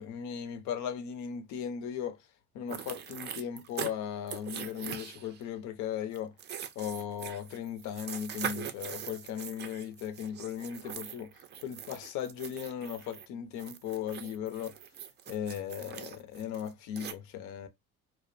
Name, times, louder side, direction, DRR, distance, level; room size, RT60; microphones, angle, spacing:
voice 1, 0.0-2.2 2.5-6.3 6.8-11.3 11.6-14.8 15.3-17.7, left 9 dB, 70° left, 0.6 m, -37 dB
sound 1, 2.7-3.9 4.3-5.4 6.1-13.3 13.6-17.1, right 8 dB, 35° right, 0.4 m, -42 dB
2.4 x 2.0 x 2.5 m
supercardioid pair, 100°, 30 cm